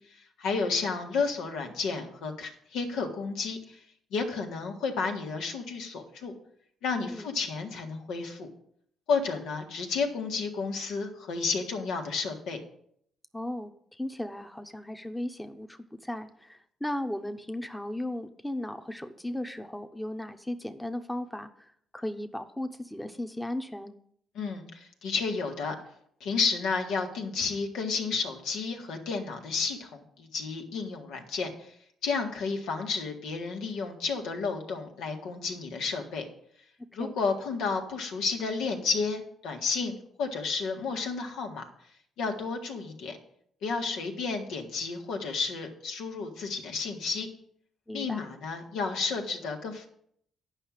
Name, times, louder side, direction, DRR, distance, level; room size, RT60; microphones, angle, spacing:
voice 1, 0.4-3.8 4.1-6.3 6.8-8.5 9.1-12.6 24.3-25.8 26.2-31.7 32.0-36.2 36.9-41.6 42.2-43.2 43.6-47.3 47.9-49.9, left 4 dB, 85° left, 3 dB, 1.8 m, -31 dB
voice 2, 13.3-23.9 37.0-37.1 47.9-48.3, left 1 dB, 5° left, 8 dB, 0.9 m, -36 dB
9.9 x 5.7 x 7.4 m, 0.67 s
cardioid pair, 90°, 0 cm